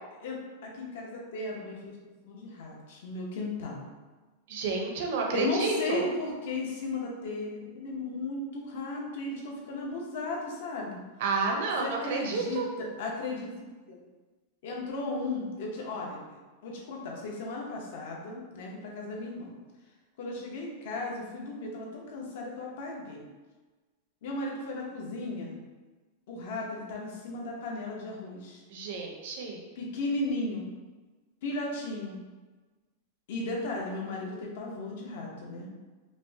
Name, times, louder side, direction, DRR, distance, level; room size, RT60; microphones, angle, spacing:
voice 1, 0.2-2.0 2.2-3.9 5.3-11.0 11.8-13.5 13.9-14.0 14.6-19.5 20.2-23.3 24.2-25.6 26.3-28.6 29.7-30.7 31.4-32.1 33.3-35.7, left 2 dB, 55° left, -1 dB, 0.8 m, -35 dB
voice 2, 4.5-6.0 11.2-12.7 28.7-29.6, right 4 dB, 55° right, 1 dB, 0.6 m, -30 dB
5.0 x 2.1 x 2.7 m, 1.3 s
supercardioid pair, 175°, 0 cm